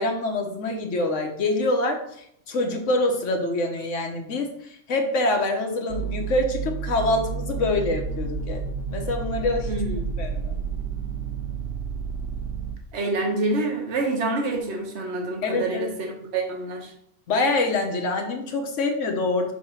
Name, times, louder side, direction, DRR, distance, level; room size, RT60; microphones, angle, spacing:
voice 1, 0.0-9.7 10.2-10.6 15.4-16.0 17.3-19.5, left 2 dB, 85° left, 3 dB, 1.3 m, -25 dB
sound 1, 5.9-12.8, right 5 dB, 85° right, 1.2 m, -30 dB
voice 2, 9.7-10.1 12.9-16.9, right 2 dB, 65° right, 2 dB, 1.3 m, -27 dB
6.0 x 2.9 x 5.6 m, 0.71 s
omnidirectional pair, 1.2 m